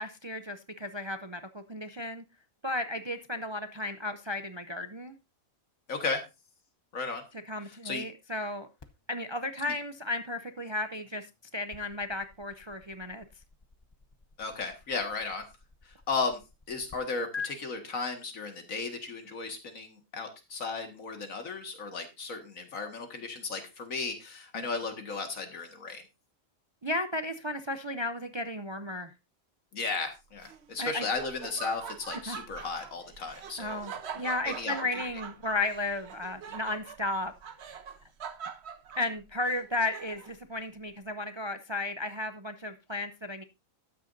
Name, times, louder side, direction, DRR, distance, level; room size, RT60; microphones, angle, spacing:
voice 1, 0.0-2.2 2.6-5.1 7.5-8.7 9.1-11.3 11.5-13.2 24.5-24.7 26.8-29.1 30.8-31.1 32.3-32.4 33.6-37.3 39.0-43.4, left 2 dB, 35° right, 9 dB, 0.4 m, -34 dB
voice 2, 5.9-6.2 6.9-7.2 7.8-8.0 14.4-15.5 15.9-16.4 16.7-26.0 29.7-33.8 34.2-35.1, left 4 dB, 85° left, 6 dB, 2.1 m, -35 dB
sound 1, 8.8-17.0 17.3-17.5, left 5 dB, 25° left, 0.6 m, -48 dB
Laughter, 30.4-40.4, right 7 dB, 55° right, 1.1 m, -44 dB
13.0 x 9.3 x 2.6 m, 0.25 s
omnidirectional pair, 1.4 m